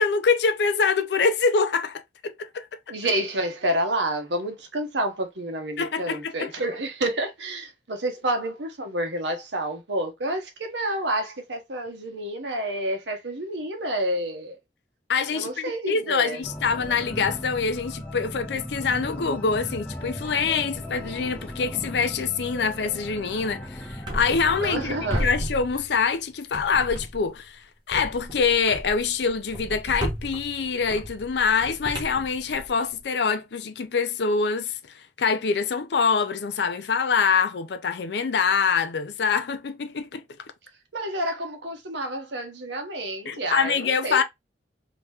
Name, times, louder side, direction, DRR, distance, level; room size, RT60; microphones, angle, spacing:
voice 1, 0.0-2.7 5.8-6.5 15.1-24.9 25.2-40.2 43.3-44.2, left 5 dB, 75° left, 0.5 m, -25 dB
voice 2, 2.9-14.6 15.3-16.4 24.6-25.3 40.9-44.2, right 1 dB, 90° right, 1.0 m, -29 dB
sound 1, 16.4-25.2, left 1 dB, 5° left, 0.4 m, -37 dB
sound 2, 24.1-24.8 25.1-26.2 26.5-27.4 27.9-33.0, equal, 25° right, 1.0 m, -34 dB
2.9 x 2.9 x 3.4 m
head